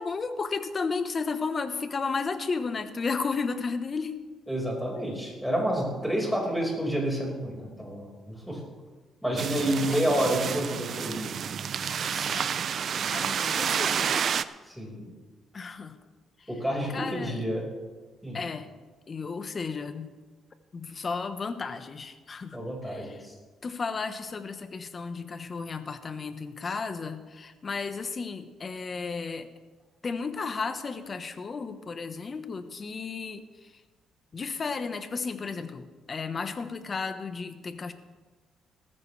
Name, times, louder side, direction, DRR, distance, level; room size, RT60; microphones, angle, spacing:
voice 1, 0.0-4.1 9.8-10.6 11.8-12.5 13.1-14.3 15.5-16.0 16.4-16.5 16.9-17.4 18.3-18.7 19.1-20.1 20.7-22.6 22.8-23.2 23.6-29.5 30.0-33.8 34.3-37.9, left 4 dB, 40° left, 9 dB, 1.2 m, -34 dB
voice 2, 4.5-8.6 9.2-11.3 14.7-15.1 16.5-17.6 18.2-18.4 22.5-23.3, right 1 dB, ahead, -2 dB, 5.2 m, -29 dB
sound 1, 9.4-14.4, right 7 dB, 55° right, 0.5 m, -29 dB
18.5 x 14.5 x 3.4 m, 1.3 s
cardioid pair, 90°, 0 cm